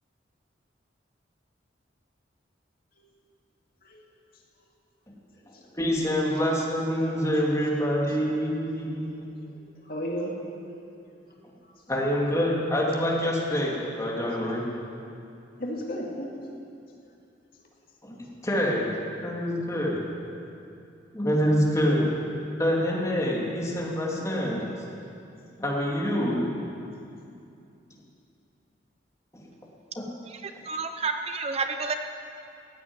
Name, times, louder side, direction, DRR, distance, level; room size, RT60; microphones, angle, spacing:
voice 1, 5.7-9.5 11.9-14.7 18.0-18.9 19.2-20.0 21.1-22.1 22.6-24.7 25.6-26.5 29.3-29.5 30.0-30.1, equal, 15° left, -3 dB, 2.6 m, -26 dB
voice 2, 9.5-10.4 11.0-11.1 11.6-11.7 15.6-16.4, equal, 55° left, -1 dB, 2.2 m, -35 dB
voice 3, 30.3-31.9, right 4 dB, 35° right, 6 dB, 0.6 m, -30 dB
15.0 x 8.3 x 9.6 m, 2.6 s
head